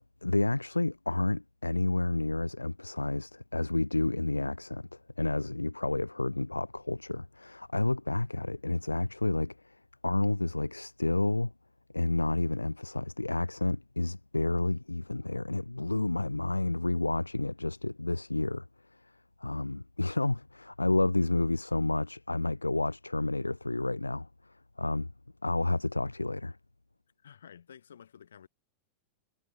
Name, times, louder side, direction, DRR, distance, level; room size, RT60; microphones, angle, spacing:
voice 1, 0.2-9.8 10.0-11.5 11.9-18.7 19.4-24.3 24.8-25.1 25.4-26.6, left 2 dB, 85° left, 0.6 m, -30 dB
voice 2, 27.2-28.5, left 8 dB, 65° left, 5.5 m, -52 dB
figure-of-eight pair, 90°, 0 cm